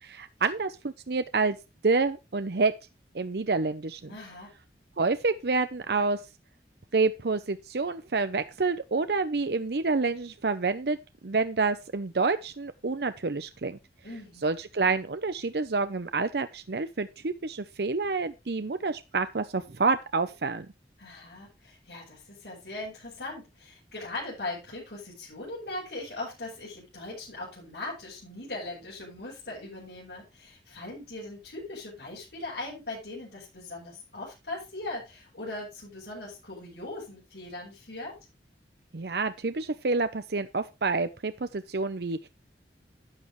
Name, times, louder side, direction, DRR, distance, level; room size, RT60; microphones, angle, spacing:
voice 1, 0.0-1.6 1.8-2.7 3.1-4.1 5.0-6.2 6.9-11.0 11.2-13.8 14.4-20.7 38.9-42.3, right 4 dB, 65° right, 11 dB, 0.7 m, -28 dB
voice 2, 4.1-4.6 14.0-14.5 21.0-38.2, left 2 dB, 65° left, -8 dB, 7.4 m, -40 dB
12.5 x 8.7 x 3.1 m, 0.25 s
head